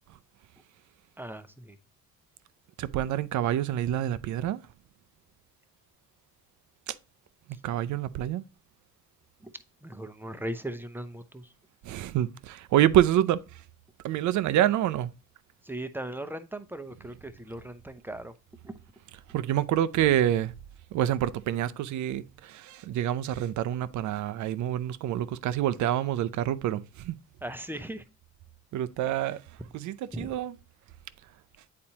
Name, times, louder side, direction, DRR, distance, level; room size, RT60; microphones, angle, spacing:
voice 1, 1.2-1.8 9.4-9.5 9.8-11.5 15.6-18.3 18.6-18.8 27.4-28.0 30.1-30.3, right 1 dB, 5° right, 0.6 m, -38 dB
voice 2, 2.8-4.6 6.9-7.0 7.6-8.4 11.8-13.4 14.0-15.1 19.3-20.5 20.9-27.2 28.7-29.4 29.7-30.5, right 12 dB, 75° right, 0.5 m, -27 dB
8.6 x 4.2 x 2.8 m
cardioid pair, 90°, 30 cm